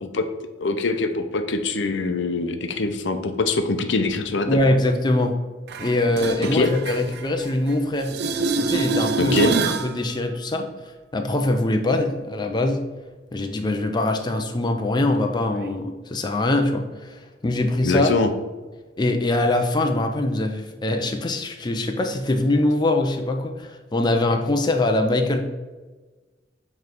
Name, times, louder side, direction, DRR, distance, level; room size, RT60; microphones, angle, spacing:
voice 1, 0.6-4.5 6.5-6.7 9.2-9.5 17.8-18.3, left 3 dB, 70° left, 7 dB, 0.6 m, -23 dB
voice 2, 4.5-5.4 5.8-8.1 8.6-10.7 11.1-12.8 13.3-18.1 19.0-25.4, left 2 dB, 25° left, 4 dB, 0.5 m, -23 dB
sound 1, 5.7-7.7 8.0-9.9 15.7-15.8, right 3 dB, 60° right, 0.5 m, -25 dB
7.2 x 3.2 x 4.5 m, 1.2 s
head